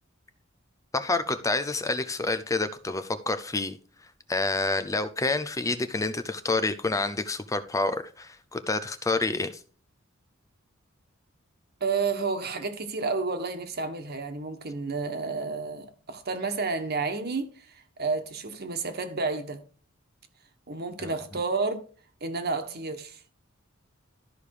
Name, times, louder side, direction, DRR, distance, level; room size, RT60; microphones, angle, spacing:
voice 1, 0.9-3.8 4.3-9.6 21.0-21.1, left 3 dB, 15° left, 0.5 m, -28 dB
voice 2, 11.8-19.6 20.7-21.8 22.2-23.2, right 4 dB, 50° right, 1.5 m, -31 dB
13.0 x 5.1 x 4.9 m
head